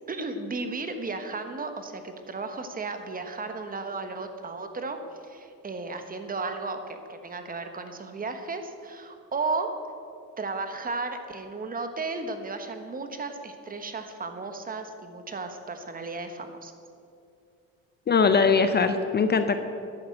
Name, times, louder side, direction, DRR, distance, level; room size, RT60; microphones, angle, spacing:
voice 1, 0.1-9.7 10.4-16.7, right 3 dB, 25° right, 7 dB, 1.2 m, -34 dB
voice 2, 18.1-19.6, left 5 dB, 30° left, 9 dB, 0.7 m, -21 dB
10.5 x 9.4 x 8.0 m, 2.5 s
cardioid pair, 115°, 34 cm